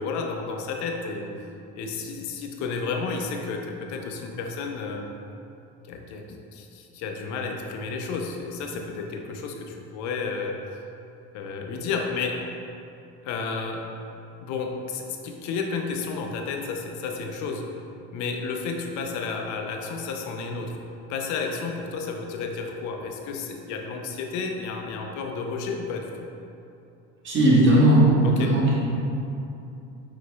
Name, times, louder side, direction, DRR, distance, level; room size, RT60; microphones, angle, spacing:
voice 1, 0.0-1.4 1.8-5.0 5.9-10.6 11.3-12.4 13.2-13.9 14.4-17.6 18.1-20.8 21.1-26.3 28.2-28.6, left 4 dB, 60° left, 2 dB, 0.6 m, -31 dB
voice 2, 27.2-28.9, right 1 dB, 35° right, -6 dB, 1.4 m, -18 dB
4.8 x 4.1 x 2.3 m, 2.8 s
supercardioid pair, 95°, 32 cm